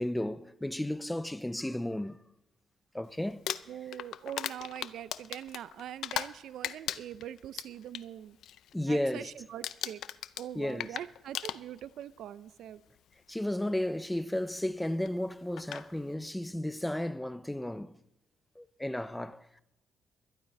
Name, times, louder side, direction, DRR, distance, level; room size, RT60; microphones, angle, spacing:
voice 1, 0.0-2.2 2.9-3.4 8.7-9.3 10.5-10.9 13.3-18.0 18.6-19.6, left 1 dB, 5° left, 0.5 m, -33 dB
Crumpling crinkling, 3.3-6.4 6.6-8.0 8.4-8.7 9.0-9.3 9.6-12.0 13.0-13.1 15.1-15.2 15.6-15.9, left 11 dB, 75° left, 0.4 m, -37 dB
voice 2, 3.7-8.4 8.9-10.0 10.4-12.8, right 11 dB, 75° right, 0.4 m, -43 dB
21.0 x 11.5 x 4.1 m
cardioid pair, 90°, 0 cm